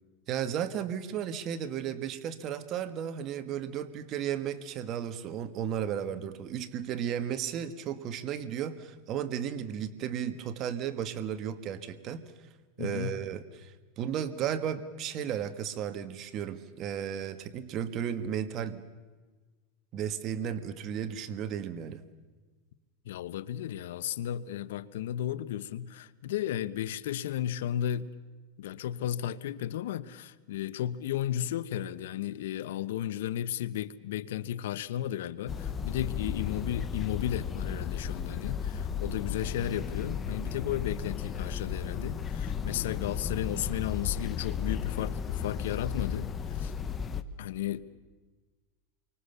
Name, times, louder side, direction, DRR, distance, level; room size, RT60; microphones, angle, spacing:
voice 1, 0.3-12.2 12.8-18.8 19.9-22.0, right 9 dB, 40° right, 1.6 m, -34 dB
voice 2, 12.8-13.2 23.1-28.2 28.6-46.7 47.4-47.8, left 11 dB, 80° left, 1.1 m, -34 dB
sound 1, 35.5-47.2, left 7 dB, 20° left, 1.2 m, -34 dB
28.0 x 24.5 x 6.9 m
supercardioid pair, 140°, 0 cm